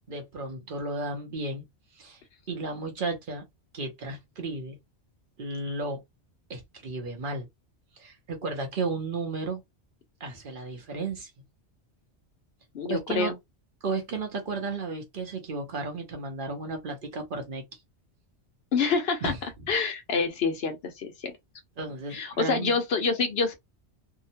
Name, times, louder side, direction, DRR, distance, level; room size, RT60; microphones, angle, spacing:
voice 1, 0.1-1.6 2.0-2.2 2.5-3.4 3.7-4.8 5.4-6.0 6.5-7.5 8.0-9.6 10.2-11.3 12.8-13.3 13.8-17.6 19.2-19.4 21.8-22.8, right 3 dB, 55° right, 0.8 m, -33 dB
voice 2, 12.7-13.3 18.7-19.3 19.7-21.3 22.1-23.5, left 4 dB, 65° left, 0.9 m, -27 dB
2.8 x 2.1 x 2.6 m
omnidirectional pair, 1.2 m